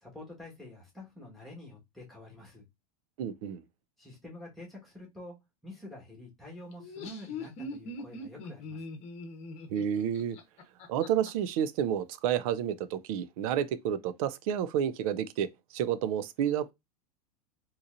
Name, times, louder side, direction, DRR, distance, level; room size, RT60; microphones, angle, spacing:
voice 1, 0.0-2.6 4.0-5.4 5.6-8.8, left 1 dB, ahead, 1.4 m, -47 dB
voice 2, 3.2-3.6 9.7-10.4 10.9-15.5 15.7-16.7, right 9 dB, 65° right, 0.5 m, -30 dB
Laughter, 6.7-11.3, left 2 dB, 35° left, 0.9 m, -41 dB
3.9 x 2.9 x 2.5 m
supercardioid pair, 145°, 20 cm